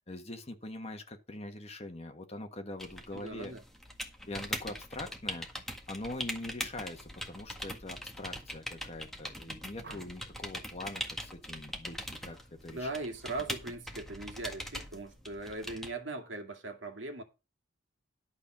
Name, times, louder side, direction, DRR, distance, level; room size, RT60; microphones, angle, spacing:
voice 1, 0.0-3.5 4.3-5.5 5.9-12.9, left 1 dB, 30° left, 1.6 m, -43 dB
sound 1, 2.8-15.9, equal, ahead, 1.7 m, -42 dB
voice 2, 3.1-3.6 12.7-17.2, right 2 dB, 80° right, 2.2 m, -39 dB
sound 2, 9.8-10.4 12.2-12.5 12.8-13.2, right 3 dB, 60° right, 1.5 m, -53 dB
11.5 x 5.6 x 6.2 m
head